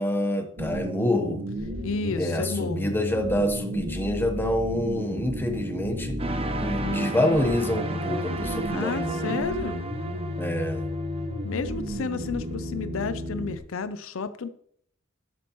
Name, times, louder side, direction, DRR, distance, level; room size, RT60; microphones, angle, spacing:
voice 1, 0.0-1.5 2.2-6.2 6.6-9.4 10.4-10.9, left 1 dB, 10° left, 5 dB, 1.0 m, -27 dB
sound 1, 0.6-13.6, equal, 90° right, 1.7 m, -33 dB
voice 2, 1.8-3.0 6.8-7.1 8.7-9.8 11.4-14.5, left 4 dB, 80° left, 12 dB, 0.6 m, -32 dB
sound 2, 6.2-12.1, right 2 dB, 30° right, 0.8 m, -34 dB
12.5 x 8.6 x 3.1 m, 0.66 s
head